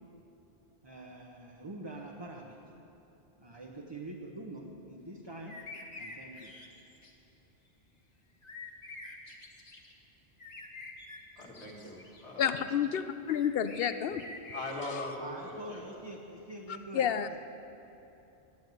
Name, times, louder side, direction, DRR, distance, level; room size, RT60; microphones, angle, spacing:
voice 1, 0.8-2.6 3.4-5.6 6.0-6.5 15.2-17.1, right 2 dB, 25° right, -1 dB, 0.8 m, -45 dB
sound 1, 5.5-7.1 8.4-9.9 10.4-12.2 13.3-15.2, left 3 dB, 40° left, 1.2 m, -47 dB
voice 2, 11.4-12.6 14.5-16.0, left 2 dB, 90° left, -2 dB, 2.2 m, -40 dB
voice 3, 12.4-14.2 14.9-15.0 16.9-17.3, left 8 dB, 65° left, 11 dB, 0.8 m, -30 dB
10.5 x 9.4 x 9.1 m, 3.0 s
omnidirectional pair, 1.1 m